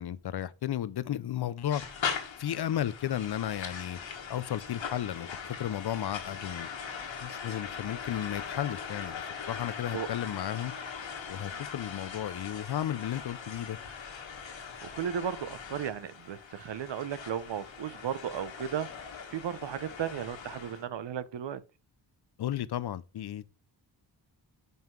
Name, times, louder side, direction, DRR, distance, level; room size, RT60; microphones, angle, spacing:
voice 1, 0.0-1.8 2.4-4.0 4.3-5.3 5.6-6.7 7.2-10.7 11.3-13.8 22.4-23.5, left 11 dB, 60° left, 0.5 m, -34 dB
sound 1, 1.7-20.8, left 6 dB, 85° left, 1.6 m, -40 dB
voice 2, 14.8-18.9 19.3-21.6, right 9 dB, 75° right, 0.8 m, -35 dB
5.7 x 5.5 x 4.5 m
wide cardioid pair, 155°, 44 cm